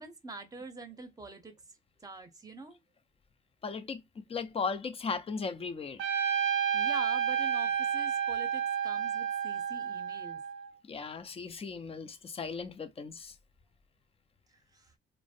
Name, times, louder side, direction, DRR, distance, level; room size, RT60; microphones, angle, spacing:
voice 1, 0.0-1.6 2.0-2.8 6.7-10.4 14.7-14.9, right 3 dB, 20° right, 0.7 m, -45 dB
voice 2, 3.6-6.1 10.9-13.4, left 5 dB, 30° left, 0.4 m, -37 dB
Trumpet, 6.0-10.7, right 8 dB, 75° right, 0.4 m, -31 dB
2.5 x 2.0 x 2.4 m
cardioid pair, 90°, 20 cm